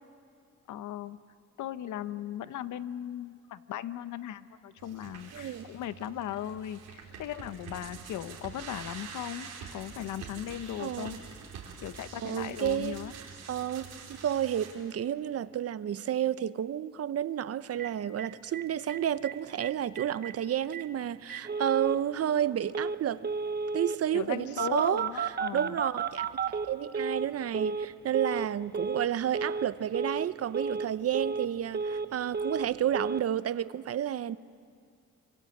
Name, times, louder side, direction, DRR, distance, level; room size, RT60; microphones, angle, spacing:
voice 1, 0.7-1.2 1.6-11.2 11.8-13.1 24.1-25.8, left 11 dB, 75° left, 13 dB, 0.9 m, -38 dB
sound 1, 4.8-14.7, right 6 dB, 85° right, 4.7 m, -46 dB
voice 2, 5.3-5.7 10.8-11.1 12.2-13.2 13.5-23.3 23.7-34.4, right 10 dB, 50° right, 15 dB, 0.7 m, -31 dB
Telephone, 17.8-17.9 18.2-18.3 18.5-18.6 18.9-19.3 19.6-19.7 20.0-20.3 20.7-20.8 21.3-22.0 22.7-23.0 23.2-24.0 24.6-27.3 27.5-27.9 28.1-28.5 28.7-29.1 29.3-29.7 29.9-30.3 30.5-30.9 31.1-32.1 32.3-32.7 32.9-33.2, right 5 dB, 35° right, 1.0 m, -32 dB
26.0 x 24.5 x 7.9 m, 2.3 s
cardioid pair, 90°, 30 cm